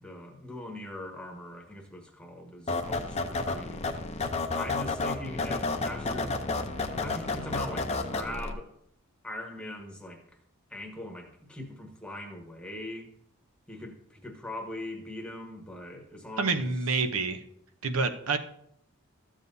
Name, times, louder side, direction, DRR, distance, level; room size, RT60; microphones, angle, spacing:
voice 1, 0.0-3.8 4.6-6.4 6.7-8.7 9.2-10.2 10.7-13.1 13.7-16.7, left 1 dB, 5° left, 2 dB, 1.1 m, -41 dB
sound 1, 2.7-8.5, left 3 dB, 30° left, 0.6 m, -31 dB
voice 2, 16.4-17.4 17.8-18.4, right 4 dB, 70° right, 9 dB, 0.8 m, -27 dB
13.5 x 7.3 x 2.7 m, 0.71 s
head